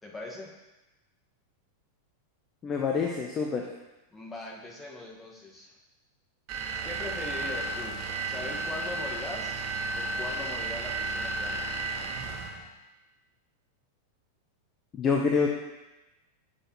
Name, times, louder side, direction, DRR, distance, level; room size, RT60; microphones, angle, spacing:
voice 1, 0.0-0.5 4.1-5.7 6.8-8.0 8.2-9.6 9.9-11.8, left 2 dB, 10° left, -3 dB, 1.6 m, -40 dB
voice 2, 2.6-3.7 14.9-15.5, left 5 dB, 25° left, 1 dB, 0.7 m, -26 dB
sound 1, 6.5-12.7, right 2 dB, 40° right, 0.9 m, -33 dB
8.6 x 6.5 x 3.1 m, 1.0 s
figure-of-eight pair, 90°, 0 cm